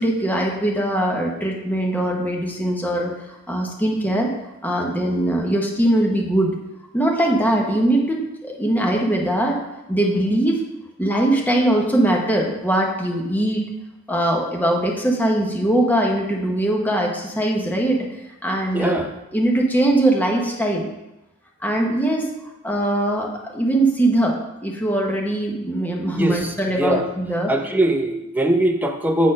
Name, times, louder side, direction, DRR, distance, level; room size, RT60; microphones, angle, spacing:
voice 1, 0.0-4.3 4.6-6.6 6.9-9.6 9.9-10.6 11.0-13.6 14.1-18.1 18.4-19.0 19.3-20.9 21.6-22.3 22.6-27.5, right 1 dB, 10° left, -1 dB, 1.0 m, -21 dB
voice 2, 18.7-19.1 26.1-27.0 27.5-29.3, right 1 dB, 10° right, 4 dB, 0.6 m, -21 dB
7.3 x 4.4 x 5.3 m, 0.95 s
head